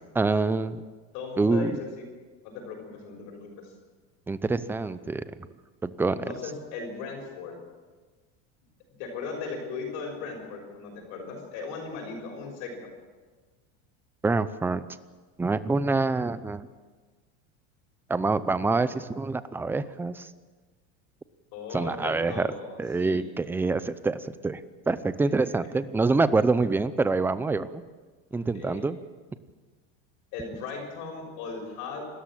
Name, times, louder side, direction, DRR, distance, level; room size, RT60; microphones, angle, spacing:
voice 1, 0.1-0.8 1.4-1.8 4.3-5.2 5.8-6.2 14.2-14.8 15.4-16.7 18.1-20.3 21.7-22.5 22.8-27.8 28.3-29.0, right 3 dB, 5° right, 14 dB, 0.6 m, -26 dB
voice 2, 1.1-2.1 2.4-3.7 6.2-7.6 9.0-12.7 21.5-23.2 28.3-28.9 30.3-32.0, left 4 dB, 60° left, 1 dB, 6.0 m, -37 dB
28.5 x 13.5 x 7.6 m, 1.4 s
supercardioid pair, 150°, 33 cm